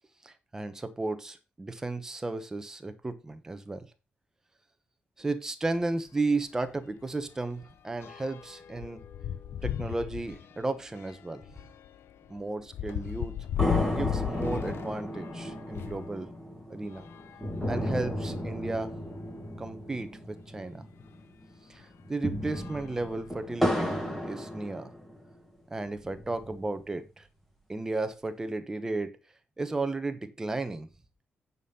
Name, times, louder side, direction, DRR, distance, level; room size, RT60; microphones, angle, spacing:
voice 1, 0.2-3.9 5.2-9.0 9.6-11.4 12.3-13.3 13.9-16.3 16.7-17.1 17.6-19.0 19.6-20.8 21.7-24.9 25.7-27.2 27.7-29.2 29.6-30.9, right 2 dB, 15° right, 9 dB, 1.0 m, -34 dB
sound 1, 5.8-5.9 6.2-6.4 6.6-16.1 16.8-18.2 18.9-19.0 19.2-19.3 21.0-21.1 21.7-22.0 22.4-23.7, left 11 dB, 80° left, 0.7 m, -37 dB
sound 2, 13.6-21.2 21.4-21.5 22.0-25.3 25.9-26.9, equal, 5° left, 2.1 m, -34 dB
9.2 x 5.4 x 5.6 m, 0.29 s
wide cardioid pair, 180°, 4 cm